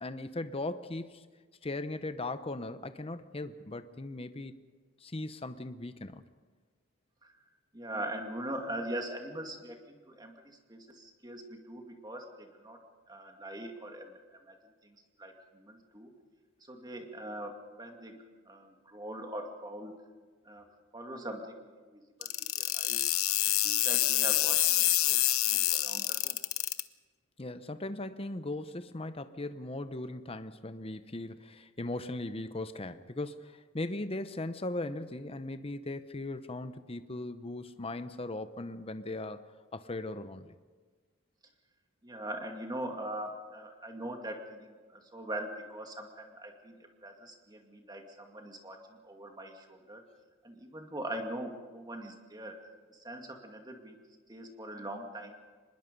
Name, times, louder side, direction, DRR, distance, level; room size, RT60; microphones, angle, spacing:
voice 1, 0.0-1.2 1.6-4.5 5.0-6.2 27.4-40.5, left 2 dB, 25° left, 11 dB, 0.8 m, -38 dB
voice 2, 7.7-12.8 13.1-16.1 16.6-18.2 18.5-19.9 20.4-20.6 20.9-23.0 23.6-26.4 42.0-50.0 50.4-52.6 52.9-54.0 54.3-55.4, right 1 dB, 20° right, 3 dB, 2.2 m, -42 dB
sound 1, 22.2-26.8, left 15 dB, 80° left, 0.9 m, -27 dB
25.0 x 21.0 x 5.3 m, 1.4 s
head